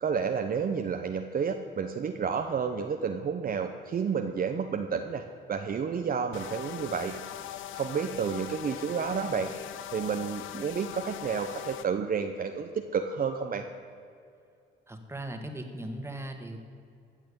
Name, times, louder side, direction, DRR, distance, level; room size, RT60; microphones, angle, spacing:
voice 1, 0.0-5.2 5.5-7.2 7.7-9.5 9.9-13.6, right 6 dB, 45° right, 5 dB, 0.9 m, -30 dB
sound 1, 6.3-11.8, left 12 dB, 80° left, 0.6 m, -41 dB
voice 2, 14.9-16.6, right 1 dB, 15° right, 5 dB, 1.9 m, -38 dB
15.5 x 6.1 x 8.7 m, 2.4 s
cardioid pair, 90°, 20 cm